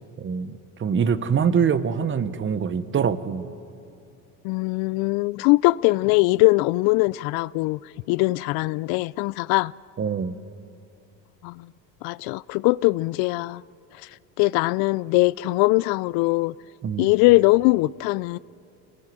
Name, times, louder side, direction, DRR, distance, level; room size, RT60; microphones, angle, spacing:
voice 1, 0.2-3.5 10.0-10.4 16.8-17.1, right 7 dB, 30° right, 1.1 m, -24 dB
voice 2, 4.4-7.8 8.1-9.7 11.4-11.7 12.0-13.6 14.4-16.5 17.0-18.4, left 22 dB, 65° left, 0.5 m, -21 dB
25.5 x 18.5 x 7.7 m
supercardioid pair, 100°, 39 cm